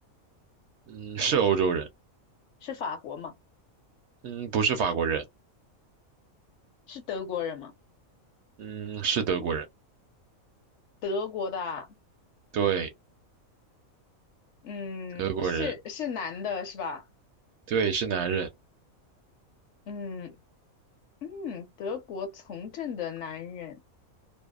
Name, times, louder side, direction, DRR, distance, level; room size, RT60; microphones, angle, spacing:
voice 1, 0.9-1.9 4.2-5.2 8.6-9.7 12.5-12.9 15.2-15.7 17.7-18.5, right 6 dB, 65° right, 0.7 m, -27 dB
voice 2, 2.6-3.3 6.9-7.7 11.0-11.9 14.6-17.0 19.9-20.4 21.2-23.8, left 5 dB, 65° left, 0.9 m, -35 dB
2.6 x 2.0 x 2.3 m
omnidirectional pair, 1.4 m